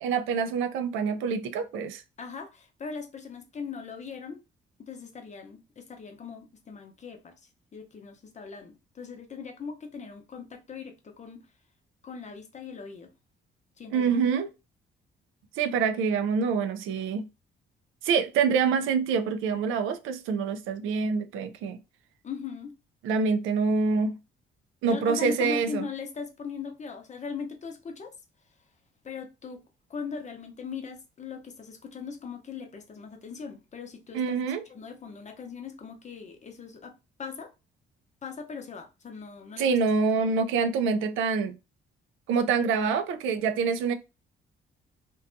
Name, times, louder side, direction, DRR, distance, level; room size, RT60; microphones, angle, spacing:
voice 1, 0.0-2.0 13.9-14.5 15.6-17.3 18.0-21.8 23.0-24.2 24.8-25.9 34.1-34.6 39.6-41.5 42.3-43.9, right 5 dB, 90° right, 0.4 m, -26 dB
voice 2, 2.2-4.4 4.8-7.3 7.7-11.4 12.0-13.1 13.8-14.1 22.2-22.7 24.8-28.1 29.0-29.6 29.9-34.4 34.7-36.9 37.2-37.5 38.2-39.7, left 5 dB, 35° left, 0.7 m, -39 dB
2.6 x 2.3 x 2.5 m
cardioid pair, 90°, 20 cm